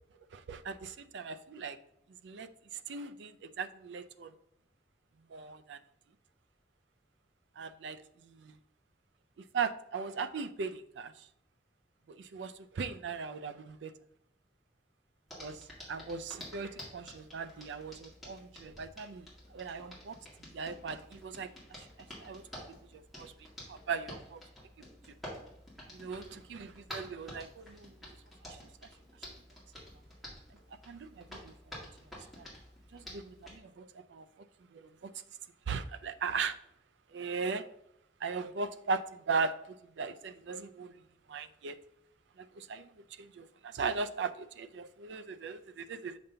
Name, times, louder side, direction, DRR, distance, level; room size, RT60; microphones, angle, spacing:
voice 1, 0.3-1.8 2.2-4.3 5.3-5.8 7.6-8.6 9.4-11.3 12.1-13.9 15.4-15.6 15.9-19.3 19.5-20.2 20.5-21.5 22.2-22.4 22.9-24.4 25.9-27.9 28.5-28.6 30.9-31.8 32.4-32.5 32.9-34.3 34.7-35.1 35.7-36.6 37.1-37.7 38.2-40.9 41.3-41.8 42.4-42.9 43.2-46.2, right 5 dB, 80° right, 0.4 m, -38 dB
Hands, 15.3-33.6, left 1 dB, ahead, 1.9 m, -50 dB
6.7 x 5.2 x 2.8 m
head